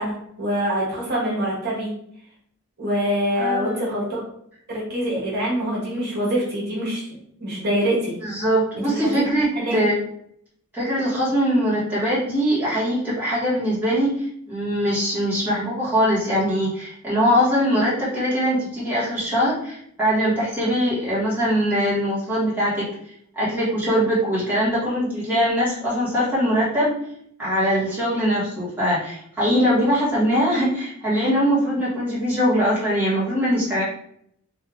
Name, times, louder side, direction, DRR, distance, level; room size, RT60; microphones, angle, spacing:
voice 1, 0.0-1.9 2.8-4.2 4.7-7.1 7.4-8.2 8.8-9.0 9.5-9.8, equal, 45° right, -6 dB, 1.4 m, -24 dB
voice 2, 3.4-3.8 8.2-9.9 10.7-22.9 23.3-26.9 27.4-33.8, equal, 10° right, -10 dB, 1.4 m, -22 dB
3.4 x 2.7 x 3.7 m, 0.69 s
head